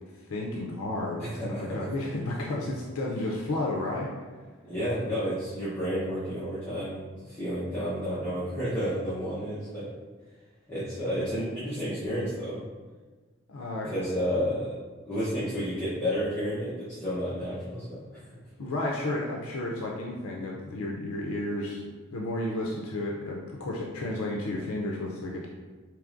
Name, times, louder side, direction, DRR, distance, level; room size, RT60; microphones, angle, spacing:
voice 1, 0.3-4.1 13.5-13.9 18.6-21.8 22.1-25.5, left 2 dB, 85° left, -2 dB, 0.5 m, -32 dB
voice 2, 1.2-1.9 4.6-9.9 10.7-12.6 13.8-14.7 15.0-18.2, equal, 10° left, -14 dB, 0.8 m, -31 dB
4.7 x 3.0 x 2.5 m, 1.4 s
head